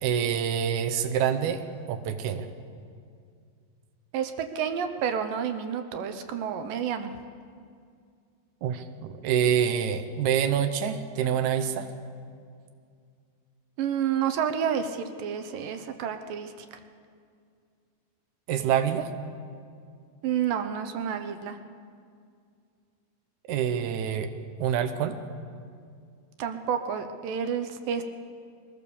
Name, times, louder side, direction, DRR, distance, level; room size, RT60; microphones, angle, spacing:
voice 1, 0.0-2.5 8.6-11.9 18.5-19.1 23.5-24.3 24.6-25.2, right 8 dB, 90° right, 7 dB, 1.6 m, -26 dB
voice 2, 4.1-7.1 13.8-16.5 20.2-21.6 26.4-28.0, right 8 dB, 70° right, 8 dB, 2.2 m, -29 dB
22.0 x 17.0 x 7.0 m, 2.3 s
omnidirectional pair, 4.9 m